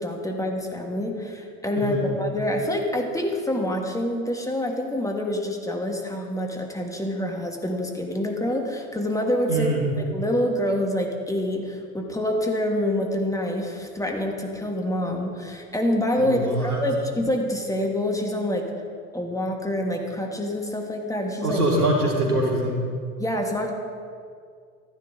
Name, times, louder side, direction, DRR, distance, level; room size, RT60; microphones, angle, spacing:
voice 1, 0.0-9.7 10.0-18.7 19.1-21.6 23.2-23.7, left 1 dB, 10° left, 2 dB, 1.7 m, -26 dB
voice 2, 9.5-9.8 16.2-16.8 21.4-22.8, right 1 dB, 85° right, -2 dB, 2.5 m, -23 dB
14.0 x 10.0 x 3.8 m, 2.1 s
figure-of-eight pair, 80°, 44 cm